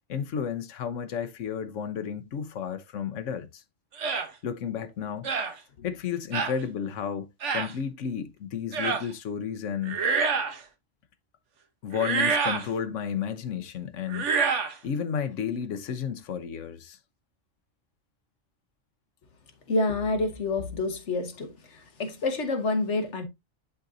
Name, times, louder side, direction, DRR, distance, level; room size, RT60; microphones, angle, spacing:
voice 1, 0.1-3.6 4.4-5.3 5.8-10.0 11.8-14.3 14.8-17.0, left 7 dB, 90° left, 1.2 m, -32 dB
sound 1, 4.0-4.3 5.2-5.5 6.3-6.6 7.4-7.7 8.7-9.1 9.8-10.6 11.9-12.7 14.1-14.7, right 5 dB, 75° right, 1.4 m, -27 dB
voice 2, 19.7-21.5 22.0-23.3, left 3 dB, 70° left, 1.5 m, -27 dB
11.0 x 3.9 x 2.7 m
omnidirectional pair, 1.2 m